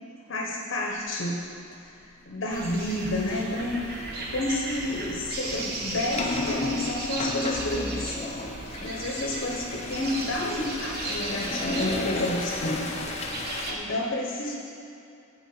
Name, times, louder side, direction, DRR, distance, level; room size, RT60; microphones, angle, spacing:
voice 1, 0.3-1.4 1.8-1.9 2.2-8.2 8.8-12.9 13.7-14.6, left 1 dB, 60° left, -2 dB, 0.9 m, -30 dB
sound 1, 2.5-13.8, right 2 dB, 50° right, 0.9 m, -36 dB
sound 2, 2.9-3.0 3.5-3.7 4.8-13.7, left 2 dB, 30° left, 0.6 m, -33 dB
6.9 x 4.3 x 6.6 m, 2.6 s
head